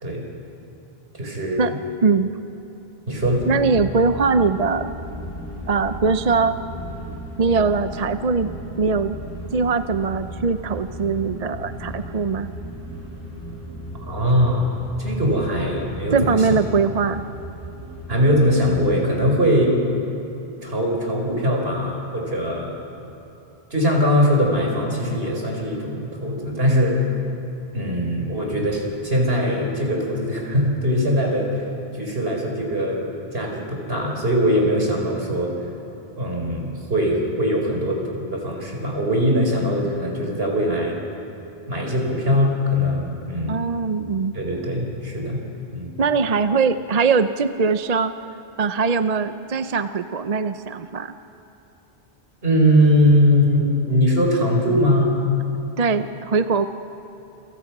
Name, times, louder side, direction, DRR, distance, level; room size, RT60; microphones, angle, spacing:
voice 1, 1.2-1.7 3.1-3.4 14.1-16.6 18.1-19.8 20.6-22.7 23.7-27.0 27.7-31.5 31.9-33.0 33.3-35.5 36.2-40.9 41.7-43.6 44.3-45.4 45.7-46.0 52.4-55.2, equal, 65° right, 0 dB, 4.8 m, -21 dB
sound 1, 3.1-19.0, equal, 60° left, 7.3 m, -35 dB
voice 2, 3.5-4.9 5.7-6.6 7.4-8.5 8.8-9.1 9.5-12.5 16.1-17.2 43.5-44.3 46.0-48.1 48.6-51.1 55.8-56.7, right 4 dB, 45° right, 10 dB, 0.7 m, -21 dB
28.5 x 25.0 x 6.0 m, 3.0 s
omnidirectional pair, 1.1 m